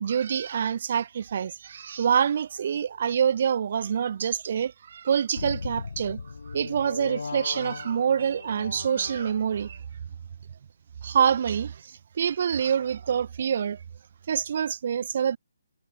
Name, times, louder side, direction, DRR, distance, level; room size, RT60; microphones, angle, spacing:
voice 1, 0.0-6.2 6.5-9.8 11.0-13.8 14.3-15.4, right 8 dB, 45° right, 0.5 m, -26 dB
sound 1, 5.4-9.8, left 4 dB, 70° left, 0.8 m, -38 dB
figure-of-eight pair, 155°, 0 cm